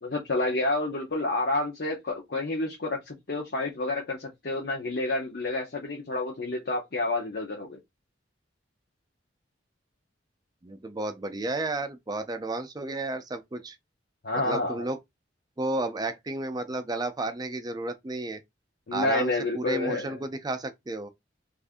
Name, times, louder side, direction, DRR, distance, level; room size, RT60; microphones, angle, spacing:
voice 1, 0.0-7.8 14.2-14.8 18.9-20.2, left 2 dB, 55° left, 0.7 m, -29 dB
voice 2, 10.6-13.8 14.3-15.0 15.6-18.4 18.9-21.1, right 2 dB, 20° right, 0.4 m, -32 dB
2.6 x 2.5 x 3.5 m
head